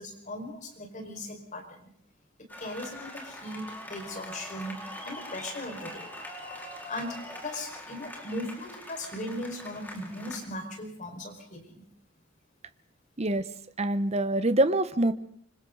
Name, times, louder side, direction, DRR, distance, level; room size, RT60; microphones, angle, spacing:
voice 1, 0.0-1.9 2.4-6.1 6.9-11.8, left 1 dB, 40° left, 3 dB, 5.0 m, -38 dB
sound 1, 2.5-10.5, left 1 dB, 10° left, 4.3 m, -43 dB
voice 2, 13.8-15.1, right 1 dB, 35° right, 12 dB, 1.0 m, -25 dB
27.0 x 25.0 x 3.9 m, 0.62 s
head